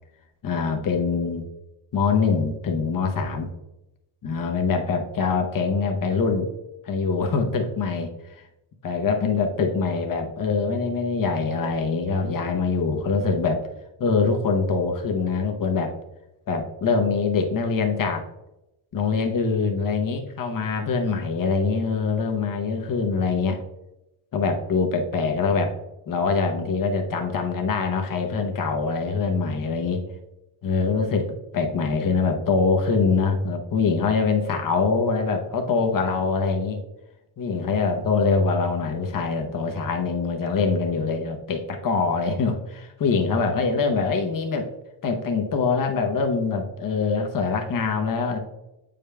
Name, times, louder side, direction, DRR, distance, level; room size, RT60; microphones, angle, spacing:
voice 1, 0.4-1.5 1.9-3.5 4.2-6.5 6.8-8.1 8.4-8.5 8.8-13.6 14.0-15.9 16.5-18.2 18.9-23.6 24.3-25.7 26.1-30.0 30.6-31.3 31.5-36.8 37.4-44.7 45.0-48.4, left 4 dB, 45° left, 4 dB, 0.8 m, -24 dB
8.4 x 5.0 x 2.2 m, 0.92 s
wide cardioid pair, 155°, 45 cm